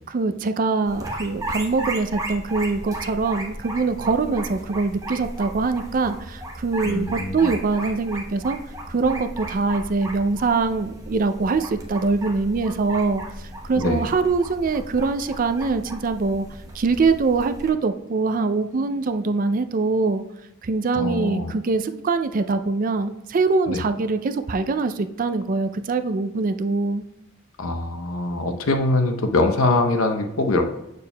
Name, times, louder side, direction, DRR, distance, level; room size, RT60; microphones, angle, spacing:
voice 1, 0.1-8.6 8.9-13.2 13.7-16.5 16.7-20.2 20.6-27.0, right 4 dB, 40° right, 10 dB, 0.4 m, -23 dB
sound 1, 0.9-17.7, right 1 dB, 15° right, 0.9 m, -35 dB
voice 2, 6.8-7.5 13.8-14.0 20.9-21.5 23.7-23.8 27.6-30.6, left 2 dB, 80° left, 6 dB, 0.8 m, -23 dB
7.1 x 6.6 x 2.2 m, 0.90 s
head